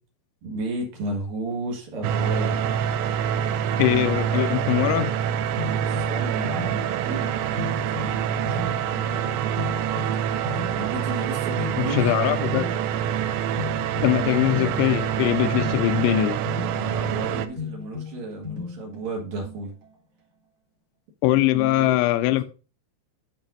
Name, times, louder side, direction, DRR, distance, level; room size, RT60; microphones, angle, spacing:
voice 1, 0.4-2.6 5.8-9.4 10.7-12.1 16.7-19.7 21.3-22.0, right 2 dB, 60° right, 2.9 m, -33 dB
sound 1, 2.0-17.5, right 9 dB, 80° right, 2.8 m, -26 dB
voice 2, 3.8-5.2 11.8-12.6 14.0-16.4 21.2-22.4, left 15 dB, 85° left, 2.8 m, -22 dB
sound 2, 5.1-19.9, left 5 dB, 40° right, 2.9 m, -37 dB
11.5 x 5.2 x 2.6 m
omnidirectional pair, 5.2 m